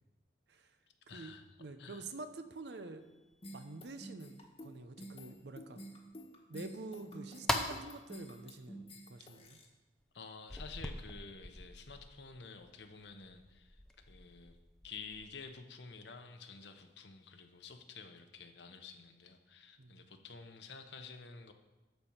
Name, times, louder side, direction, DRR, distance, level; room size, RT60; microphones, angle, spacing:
voice 1, 1.1-1.5 1.8-2.1 10.1-14.6 14.8-21.5, left 5 dB, 70° left, 7 dB, 0.9 m, -51 dB
voice 2, 1.6-3.0 3.5-5.8 6.5-9.6 19.8-20.0, right 3 dB, 70° right, 9 dB, 0.7 m, -48 dB
sound 1, 3.0-3.3 3.9-4.0 4.4-4.5 5.0-5.7 6.1-6.2 6.7-6.8 7.2-8.4 8.9-9.0 9.4-9.5 10.0-10.1 10.5-15.5, equal, 5° left, 0.6 m, -42 dB
sound 2, 3.4-9.7, right 1 dB, 30° left, 1.3 m, -50 dB
11.5 x 4.5 x 7.2 m, 1.1 s
head